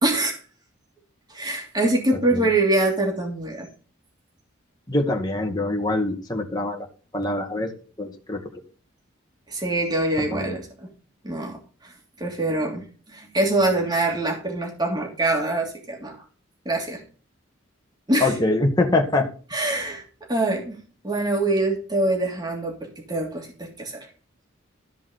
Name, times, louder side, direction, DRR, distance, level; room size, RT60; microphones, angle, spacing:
voice 1, 0.0-0.4 1.3-3.7 9.5-10.9 11.2-11.6 11.8-11.9 12.2-16.2 16.6-17.0 18.1-18.4 19.5-20.0 20.3-20.8 21.0-24.1, right 2 dB, 20° right, 0 dB, 3.0 m, -24 dB
voice 2, 4.9-6.9 7.1-7.7 8.0-8.4 10.3-10.6 18.2-19.3, left 2 dB, 20° left, 1 dB, 2.1 m, -24 dB
14.5 x 5.4 x 5.1 m, 0.39 s
head